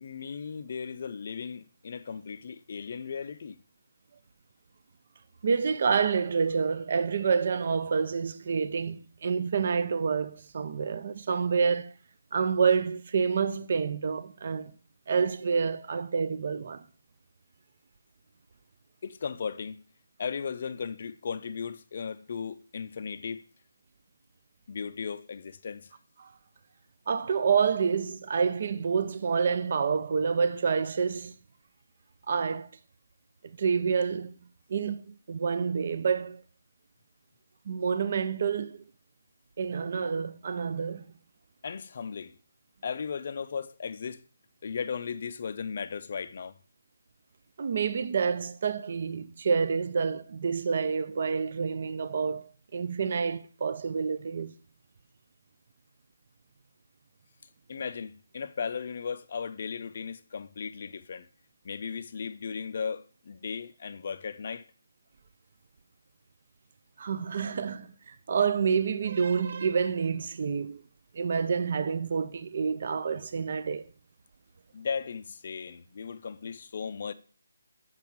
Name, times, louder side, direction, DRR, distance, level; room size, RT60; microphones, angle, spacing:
voice 1, 0.0-3.6 19.0-19.8 20.2-23.5 24.7-25.9 41.6-42.4 42.8-44.3 44.6-46.6 57.7-61.3 61.6-64.7 74.7-77.1, left 6 dB, 35° left, 0.4 m, -36 dB
voice 2, 5.4-11.9 12.3-14.7 15.1-16.8 26.2-26.3 27.1-31.3 32.3-32.7 33.6-34.3 34.7-36.4 37.7-38.8 39.6-41.1 47.6-54.5 67.0-70.8 71.1-73.8, right 6 dB, 35° right, 0.3 m, -28 dB
7.1 x 5.9 x 4.6 m
hypercardioid pair, 175°, 0 cm